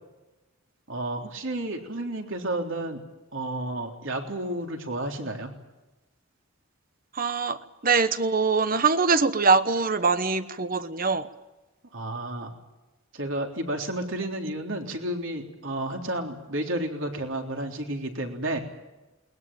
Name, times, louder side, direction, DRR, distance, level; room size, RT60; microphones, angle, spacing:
voice 1, 0.9-3.0 3.3-5.5 11.9-12.6 13.1-18.6, right 1 dB, 60° right, 3.6 m, -31 dB
voice 2, 7.2-11.3, right 4 dB, 40° right, 1.1 m, -23 dB
21.5 x 21.0 x 9.1 m
head